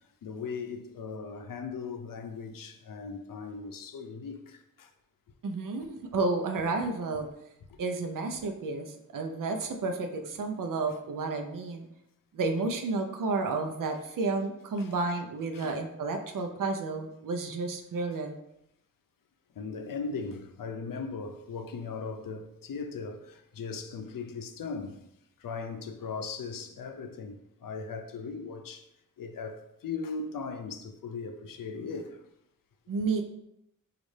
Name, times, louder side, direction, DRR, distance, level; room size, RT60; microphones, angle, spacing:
voice 1, 0.2-4.9 7.7-7.8 14.8-14.9 15.5-15.8 19.6-25.0 25.4-28.9 29.2-32.2, left 4 dB, 85° left, 0.5 m, -38 dB
voice 2, 5.4-7.3 7.8-11.9 12.3-18.4 32.9-33.2, right 3 dB, 75° right, 0.5 m, -31 dB
5.2 x 2.4 x 3.2 m
wide cardioid pair, 100°, 33 cm